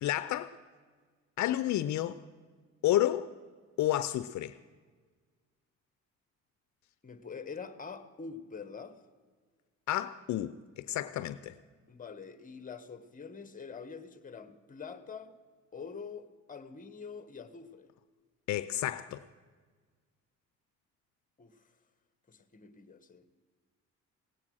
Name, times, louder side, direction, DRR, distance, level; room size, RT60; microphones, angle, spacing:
voice 1, 0.0-0.5 1.4-2.2 2.8-3.3 3.8-4.6 9.9-11.5 18.5-19.2, left 13 dB, 70° left, 0.5 m, -30 dB
voice 2, 7.0-9.0 11.9-15.4 15.7-17.9 21.4-21.7 22.3-23.4, left 5 dB, 25° left, 1.1 m, -45 dB
17.5 x 8.7 x 6.2 m
cardioid pair, 90°, 30 cm